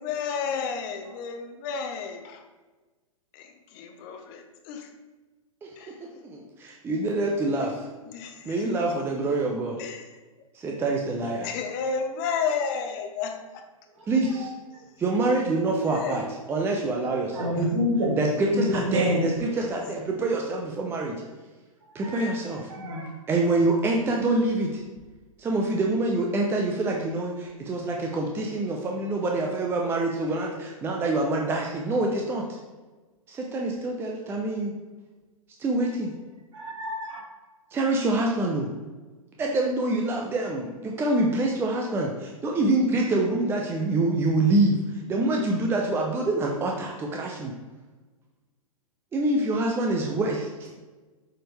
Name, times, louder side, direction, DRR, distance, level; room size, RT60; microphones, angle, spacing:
voice 1, 0.0-2.4 3.3-4.9 5.8-6.0 8.1-8.6 9.8-10.1 11.4-13.6 15.8-16.3 17.5-17.7 19.6-19.7, left 6 dB, 35° left, 5 dB, 0.7 m, -32 dB
voice 2, 6.2-7.9 8.4-9.8 10.5-11.5 14.1-14.5 15.0-16.2 16.5-17.6 18.2-21.2 21.9-22.7 23.3-24.8 25.4-32.6 33.3-34.7 35.6-36.1 37.7-38.7 39.4-47.5 49.1-50.7, right 2 dB, 15° right, 0 dB, 0.6 m, -26 dB
voice 3, 17.3-18.2 18.5-19.3 22.0-22.3 22.7-23.2 26.9-27.0 36.5-37.2, equal, 60° right, -1 dB, 1.9 m, -27 dB
7.4 x 4.4 x 3.3 m, 1.3 s
figure-of-eight pair, 110°, 18 cm